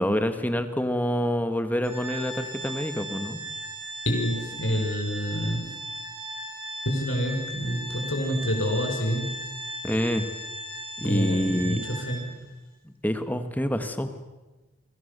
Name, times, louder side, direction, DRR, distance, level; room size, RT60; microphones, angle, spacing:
voice 1, 0.0-3.4 9.8-10.3 11.0-11.8 13.0-14.1, equal, 10° left, 8 dB, 1.7 m, -27 dB
Organ, 1.8-12.5, equal, 15° right, 7.2 m, -37 dB
voice 2, 4.1-5.7 6.9-9.3 11.0-12.4, equal, 70° left, 3 dB, 5.4 m, -27 dB
29.5 x 24.5 x 6.9 m, 1.2 s
head